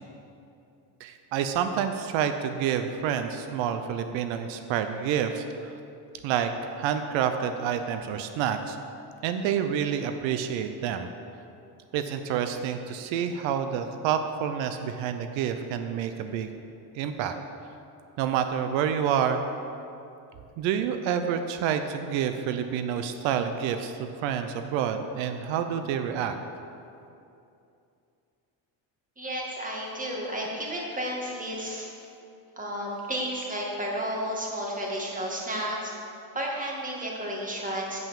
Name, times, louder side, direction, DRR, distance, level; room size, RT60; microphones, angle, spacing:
voice 1, 1.0-5.8 6.2-8.8 9.2-11.1 11.9-16.5 16.9-17.3 18.2-19.4 20.6-26.3, right 8 dB, 90° right, 8 dB, 0.7 m, -28 dB
voice 2, 29.2-31.9 32.6-35.9 36.3-38.0, equal, 20° right, -3 dB, 2.0 m, -32 dB
8.0 x 5.7 x 7.1 m, 2.7 s
cardioid pair, 110°, 44 cm